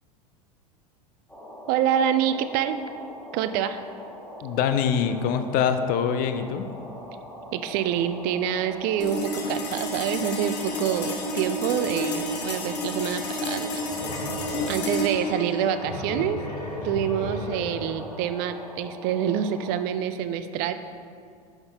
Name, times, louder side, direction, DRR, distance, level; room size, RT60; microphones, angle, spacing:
sound 1, 1.3-19.7, equal, 5° left, 1.4 m, -41 dB
voice 1, 1.7-2.8 3.3-3.8 7.5-13.7 14.7-16.4 16.8-20.7, right 9 dB, 50° right, 11 dB, 0.4 m, -26 dB
voice 2, 4.4-6.6, left 7 dB, 45° left, 9 dB, 0.5 m, -24 dB
sound 2, 9.0-19.6, left 1 dB, 90° left, 0.7 m, -32 dB
sound 3, 12.7-12.9 13.4-18.2, left 2 dB, 75° left, 1.2 m, -36 dB
5.8 x 5.5 x 3.4 m, 2.2 s
hypercardioid pair, 90°, 20 cm